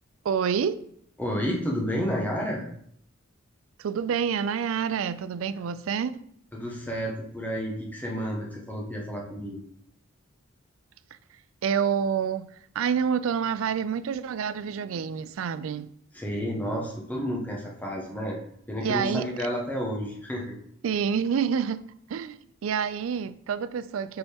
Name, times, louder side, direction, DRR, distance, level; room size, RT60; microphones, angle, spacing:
voice 1, 0.2-0.8 3.8-6.3 11.6-15.9 18.8-19.5 20.8-24.2, right 7 dB, 75° right, 0.4 m, -28 dB
voice 2, 1.2-2.6 6.5-9.6 16.1-18.4 18.7-20.6, equal, 10° left, 1.1 m, -31 dB
6.7 x 4.3 x 3.5 m
head